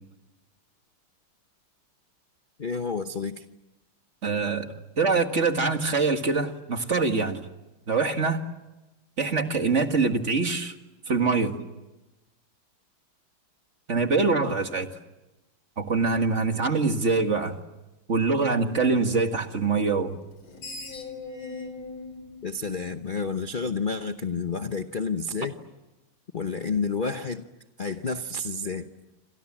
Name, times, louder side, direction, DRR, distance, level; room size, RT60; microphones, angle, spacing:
voice 1, 2.6-3.4 22.4-25.6 26.3-27.4 27.8-28.9, left 4 dB, 45° left, 8 dB, 0.6 m, -30 dB
voice 2, 4.2-4.7 5.0-7.5 7.9-8.4 9.2-10.7 11.1-11.5 13.9-14.9 15.8-17.6 18.1-20.2, right 4 dB, 35° right, 6 dB, 2.0 m, -24 dB
Screech, 20.3-23.5, left 3 dB, 70° left, 4.8 m, -40 dB
28.5 x 27.0 x 7.4 m, 1.0 s
omnidirectional pair, 2.3 m